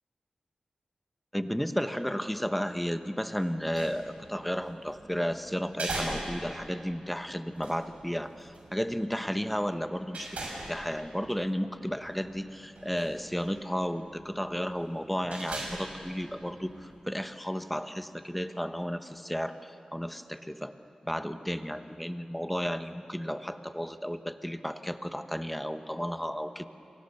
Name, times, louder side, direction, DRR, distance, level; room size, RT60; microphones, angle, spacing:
voice 1, 1.3-10.4 10.7-20.7 21.0-26.6, equal, 5° left, 9 dB, 1.1 m, -33 dB
sound 1, 3.5-17.0, right 2 dB, 85° right, 6.4 m, -43 dB
29.5 x 23.5 x 6.8 m, 2.8 s
wide cardioid pair, 80°, 2 cm